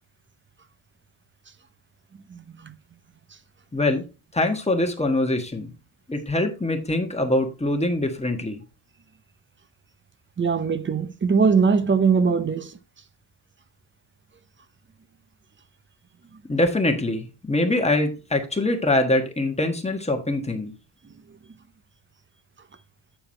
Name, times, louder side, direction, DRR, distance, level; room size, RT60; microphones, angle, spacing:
voice 1, 2.3-2.7 10.4-12.8, right 5 dB, 25° right, 0.7 m, -21 dB
voice 2, 3.7-4.0 4.3-5.7 6.1-8.6 16.5-20.7, left 2 dB, 15° left, 1.5 m, -23 dB
8.9 x 4.6 x 4.4 m
cardioid pair, 120°, 48 cm